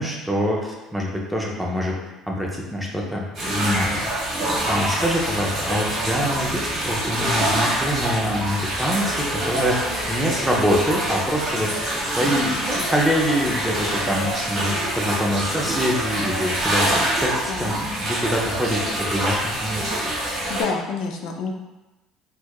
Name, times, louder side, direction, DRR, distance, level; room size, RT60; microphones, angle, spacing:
voice 1, 0.0-1.9 2.3-4.1 4.7-11.7 12.2-19.9, equal, 5° right, -2 dB, 0.5 m, -25 dB
sound 1, 3.3-20.6, right 1 dB, 35° right, 1.4 m, -25 dB
voice 2, 17.5-17.8 20.2-21.5, left 5 dB, 55° left, 2 dB, 0.3 m, -29 dB
4.4 x 2.3 x 2.3 m, 1.1 s
cardioid pair, 160°, 0 cm